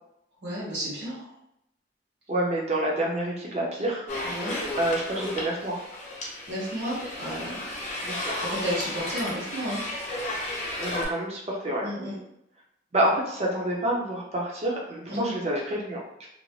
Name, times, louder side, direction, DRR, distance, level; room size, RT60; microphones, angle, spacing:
voice 1, 0.4-1.3 4.2-4.6 6.5-7.6 8.4-9.8 11.8-12.2 15.1-15.4, equal, 65° right, -7 dB, 1.2 m, -32 dB
voice 2, 2.3-4.0 4.8-5.8 8.1-8.3 10.8-11.9 12.9-16.3, right 1 dB, 35° right, -2 dB, 0.6 m, -28 dB
sound 1, 4.1-11.1, left 1 dB, 40° left, 0.7 m, -33 dB
2.5 x 2.1 x 3.1 m, 0.81 s
head